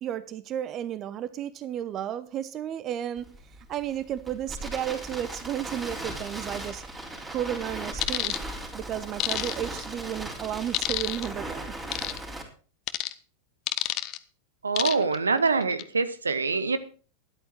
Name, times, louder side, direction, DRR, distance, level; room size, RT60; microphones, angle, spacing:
voice 1, 0.0-3.3 3.7-6.8 7.3-8.4 8.7-11.7, right 10 dB, 30° right, 16 dB, 0.8 m, -33 dB
Crackle, 3.2-12.4, right 1 dB, 15° right, 3.9 m, -38 dB
sound 1, 8.0-8.4 9.2-9.8 10.7-11.3 11.9-12.2 12.9-13.1 13.7-14.2 14.8-15.2 15.6-15.8, left 16 dB, 40° left, 0.7 m, -28 dB
voice 2, 14.6-16.8, right 4 dB, 75° right, 13 dB, 0.9 m, -25 dB
12.5 x 11.0 x 4.5 m, 0.39 s
figure-of-eight pair, 90°, 0 cm